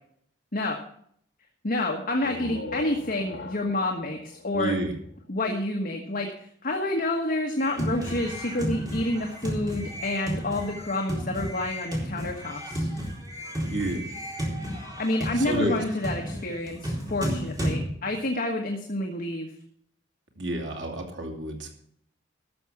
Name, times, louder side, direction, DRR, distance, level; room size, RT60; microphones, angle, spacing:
voice 1, 1.6-4.7 5.3-12.9 15.0-19.5, left 1 dB, 50° left, 1 dB, 1.4 m, -29 dB
sound 1, 2.0-5.7, left 2 dB, 90° left, 1.2 m, -41 dB
voice 2, 4.5-4.9 13.7-14.1 15.4-15.8 17.7-17.9 20.4-21.7, right 1 dB, 85° right, 2 dB, 2.7 m, -30 dB
sound 2, 7.6-17.8, equal, 20° right, 4.0 m, -32 dB
13.0 x 7.0 x 7.3 m, 0.66 s
head